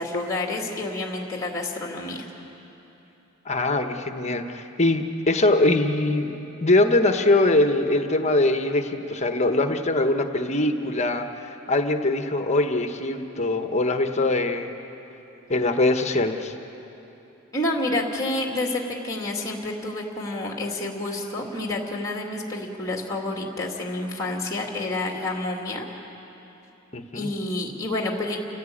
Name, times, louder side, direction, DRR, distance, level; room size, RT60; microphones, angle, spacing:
voice 1, 0.0-2.3 17.5-25.9 27.1-28.4, left 2 dB, 15° left, 0 dB, 2.4 m, -29 dB
voice 2, 3.4-6.3 6.6-14.8 15.5-16.5 26.9-27.3, left 2 dB, 35° left, 6 dB, 1.2 m, -22 dB
29.0 x 16.0 x 8.6 m, 3.0 s
head